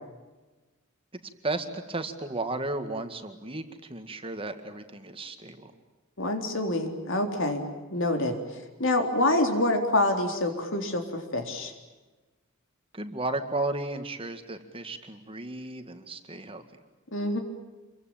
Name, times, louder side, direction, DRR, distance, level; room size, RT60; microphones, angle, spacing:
voice 1, 1.4-5.7 12.9-16.6, right 2 dB, 25° right, 7 dB, 2.0 m, -34 dB
voice 2, 6.2-7.7 7.9-11.7 17.1-17.4, left 1 dB, 65° left, 5 dB, 3.9 m, -26 dB
28.0 x 23.5 x 9.0 m, 1.2 s
head